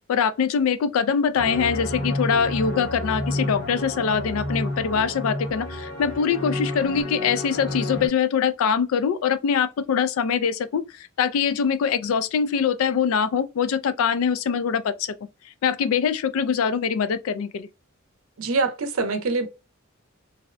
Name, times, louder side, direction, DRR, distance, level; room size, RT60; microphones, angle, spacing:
voice 1, 0.1-15.1 15.6-17.7, left 6 dB, 80° left, 0.3 m, -23 dB
sound 1, 1.3-8.1, left 1 dB, 55° left, 0.8 m, -30 dB
voice 2, 18.4-19.5, right 3 dB, 85° right, 0.6 m, -24 dB
2.7 x 2.0 x 2.4 m
head